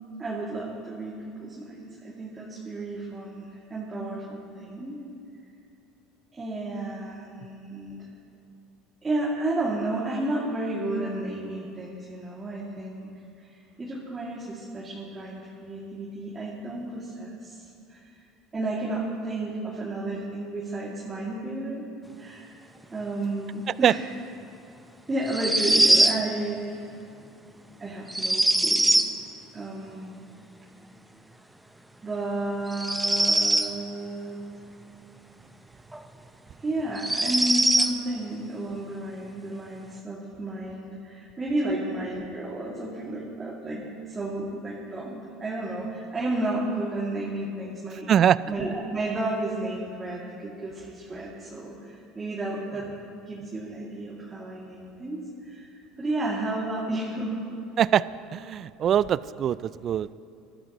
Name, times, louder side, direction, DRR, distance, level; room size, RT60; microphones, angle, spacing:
voice 1, 0.2-5.0 6.3-8.1 9.0-13.1 13.4-18.2 18.5-21.8 22.2-22.6 22.9-24.0 25.1-26.9 27.8-28.9 29.5-30.2 32.0-34.4 36.6-48.1 48.5-52.9 53.3-55.7 56.0-57.4, right 2 dB, 20° right, -6 dB, 2.4 m, -32 dB
sound 1, 25.3-26.2 28.1-29.1 32.7-33.7 35.9-36.0 36.9-37.9, right 1 dB, 5° right, 0.7 m, -22 dB
voice 2, 58.3-60.1, right 9 dB, 45° right, 18 dB, 0.3 m, -22 dB
22.0 x 13.0 x 3.0 m, 2.6 s
supercardioid pair, 90°, 0 cm